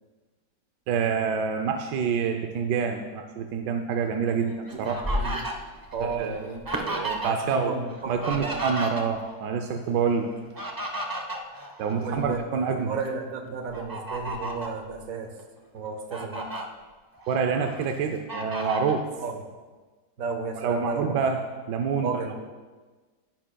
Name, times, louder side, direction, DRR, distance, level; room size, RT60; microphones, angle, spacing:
voice 1, 0.9-5.1 6.0-6.5 6.7-7.7 8.1-10.3 11.8-12.9 17.3-19.0 20.6-21.4 21.7-22.1, right 6 dB, 85° right, 4 dB, 1.3 m, -27 dB
Fowl, 4.3-7.6 7.9-9.4 10.3-12.4 12.9-13.1 13.7-14.8 15.4-15.5 15.8-16.6 17.2-17.8 18.3-19.0, right 1 dB, 20° right, 0.5 m, -33 dB
voice 2, 4.4-5.4 5.9-6.6 7.2-8.6 10.0-10.2 12.0-15.3 15.7-16.5 19.2-19.4 20.2-21.3 22.0-22.4, right 4 dB, 55° right, 5 dB, 1.5 m, -33 dB
15.0 x 10.0 x 2.3 m, 1.3 s
omnidirectional pair, 1.8 m